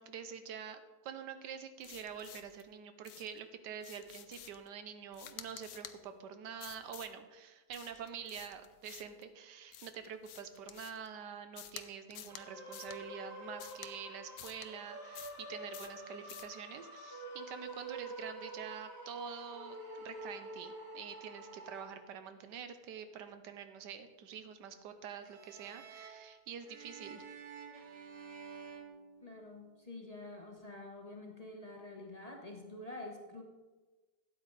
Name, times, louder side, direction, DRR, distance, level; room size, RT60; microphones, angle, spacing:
voice 1, 0.0-27.2, right 7 dB, 85° right, 9 dB, 1.4 m, -46 dB
sound 1, 1.8-2.6 3.0-3.4 3.8-4.7 5.1-6.0 6.6-7.2 7.7-9.2 9.7-11.1 11.6-11.8 12.1-12.4 12.7-13.0 13.6-13.9 14.4-14.7 15.1-15.4 15.7-16.0 16.3-16.5, left 10 dB, 65° left, 0.8 m, -51 dB
sound 2, 12.3-21.8, right 1 dB, 10° right, 2.3 m, -47 dB
sound 3, 25.2-29.8, right 6 dB, 55° right, 1.3 m, -51 dB
voice 2, 29.2-33.4, left 2 dB, 25° left, 1 dB, 1.0 m, -47 dB
12.5 x 8.4 x 4.0 m, 1.2 s
omnidirectional pair, 1.8 m